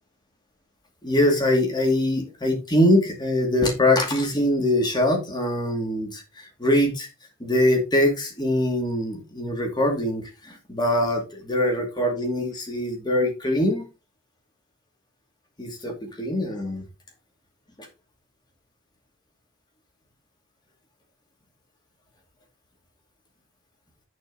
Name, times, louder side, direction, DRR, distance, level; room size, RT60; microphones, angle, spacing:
voice 1, 1.0-7.1 7.4-13.9 15.6-16.8, left 1 dB, 20° left, 1 dB, 2.4 m, -23 dB
10.5 x 4.5 x 4.1 m, 0.27 s
head